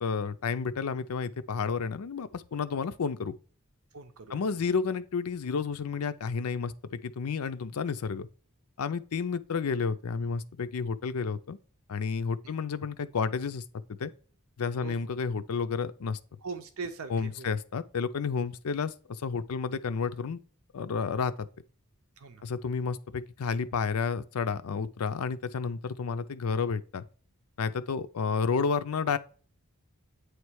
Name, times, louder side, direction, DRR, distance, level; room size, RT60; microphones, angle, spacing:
voice 1, 0.0-3.3 4.3-8.3 8.8-11.6 11.9-13.6 13.9-14.1 14.6-16.2 17.1-20.4 20.7-21.5 22.4-27.0 27.6-29.2, left 5 dB, 85° left, 0.5 m, -31 dB
voice 2, 3.9-4.5 12.4-12.5 14.8-15.0 16.4-17.5 22.2-22.4, right 4 dB, 80° right, 0.7 m, -40 dB
8.7 x 3.2 x 4.7 m
head